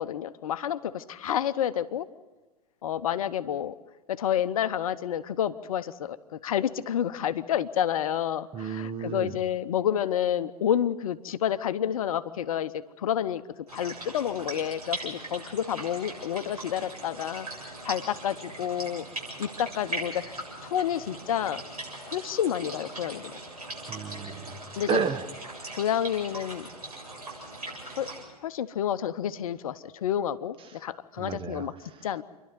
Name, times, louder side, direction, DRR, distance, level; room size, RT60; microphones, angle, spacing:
voice 1, 0.0-2.1 2.8-3.7 4.1-6.2 6.4-13.4 13.7-19.0 19.4-20.2 20.6-21.6 22.0-23.3 24.8-25.0 25.7-26.7 28.0-28.1 28.4-31.7 32.0-32.2, left 10 dB, 65° left, 13 dB, 0.8 m, -29 dB
voice 2, 8.5-9.4 23.9-25.3 30.6-30.8 31.1-32.1, right 6 dB, 25° right, 9 dB, 1.4 m, -32 dB
sound 1, 13.7-28.2, right 2 dB, 80° right, 7.8 m, -40 dB
28.0 x 12.0 x 9.4 m, 1.2 s
figure-of-eight pair, 90°, 20 cm